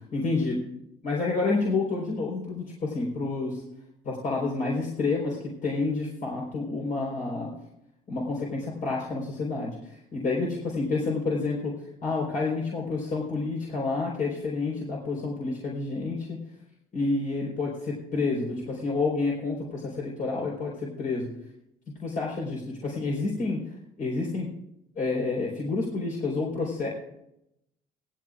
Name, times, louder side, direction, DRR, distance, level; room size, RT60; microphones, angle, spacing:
voice 1, 0.1-0.6 1.0-3.6 4.0-7.5 8.1-11.7 12.0-16.4 16.9-21.3 22.0-23.6 24.0-24.5 25.0-26.9, left 3 dB, 55° left, -3 dB, 4.4 m, -29 dB
18.5 x 15.0 x 2.5 m, 0.81 s
cardioid pair, 110°, 17 cm